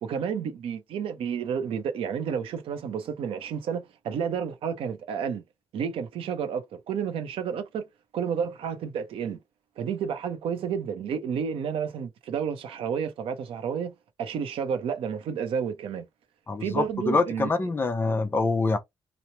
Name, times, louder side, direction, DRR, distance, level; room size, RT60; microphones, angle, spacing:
voice 1, 0.0-5.4 5.7-7.9 8.1-9.4 9.8-13.9 14.2-16.1 16.6-17.5, right 7 dB, 85° right, 0.7 m, -31 dB
voice 2, 16.5-18.8, left 3 dB, 25° left, 0.5 m, -25 dB
3.1 x 2.1 x 2.7 m
wide cardioid pair, 150°, 9 cm